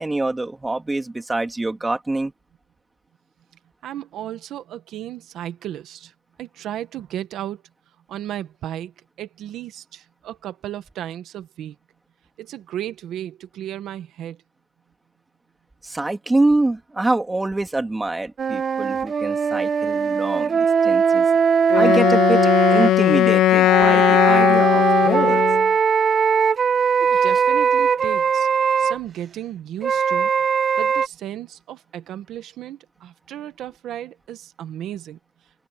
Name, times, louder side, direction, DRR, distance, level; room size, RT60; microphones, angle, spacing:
voice 1, 0.0-2.3 15.8-21.3 21.7-25.4, right 2 dB, 15° right, 2.5 m, -25 dB
voice 2, 3.8-7.6 8.1-11.8 12.4-14.4 27.0-28.5 28.8-30.3 30.8-35.2, right 12 dB, 80° right, 1.2 m, -34 dB
sound 1, 18.4-22.9 23.6-29.0 29.8-31.1, right 6 dB, 45° right, 0.8 m, -20 dB
Wind instrument woodwind instrument, 21.7-25.7, left 13 dB, 85° left, 0.5 m, -17 dB
cardioid pair, 90°, 0 cm